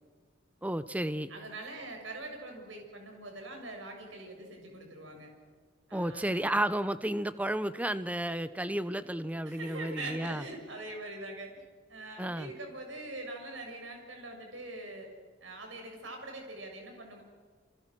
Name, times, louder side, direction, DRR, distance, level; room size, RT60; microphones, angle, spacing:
voice 1, 0.6-1.3 5.9-10.4 12.2-12.5, right 1 dB, 10° right, 12 dB, 0.9 m, -32 dB
voice 2, 1.3-5.3 5.9-6.4 9.5-11.5 11.9-15.1 15.4-17.2, right 2 dB, 80° right, 3 dB, 6.6 m, -43 dB
28.5 x 27.5 x 6.3 m, 1.5 s
head